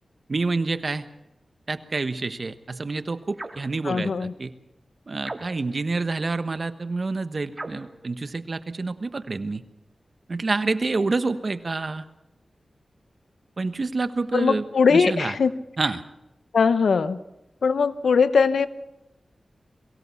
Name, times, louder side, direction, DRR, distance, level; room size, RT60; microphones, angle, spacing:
voice 1, 0.3-1.1 1.7-4.5 5.1-9.6 10.3-12.0 13.6-15.3 15.8-16.0, right 3 dB, 55° right, 11 dB, 1.2 m, -28 dB
sound 1, 3.3-3.7 5.2-5.8 7.5-7.9, right 2 dB, 30° right, 1.9 m, -38 dB
voice 2, 3.8-4.3 14.3-15.5 16.5-17.2 17.6-18.7, left 5 dB, 90° left, 14 dB, 0.8 m, -20 dB
23.0 x 16.5 x 7.0 m, 0.92 s
cardioid pair, 55°, 0 cm